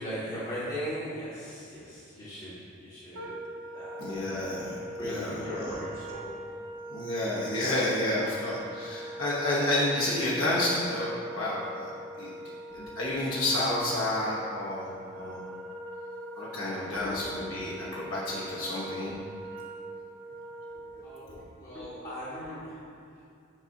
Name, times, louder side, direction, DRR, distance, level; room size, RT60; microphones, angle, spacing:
voice 1, 0.0-4.3 5.0-6.5 12.7-12.9 16.9-17.4 20.7-23.2, equal, 35° left, -10 dB, 1.4 m, -39 dB
Wind instrument woodwind instrument, 3.1-21.3, right 1 dB, 75° right, 0.6 m, -42 dB
voice 2, 4.0-5.7 6.9-11.9 12.2-12.3 12.7-15.4 16.4-19.2, left 1 dB, 85° left, -7 dB, 1.1 m, -30 dB
7.8 x 2.7 x 5.8 m, 2.4 s
head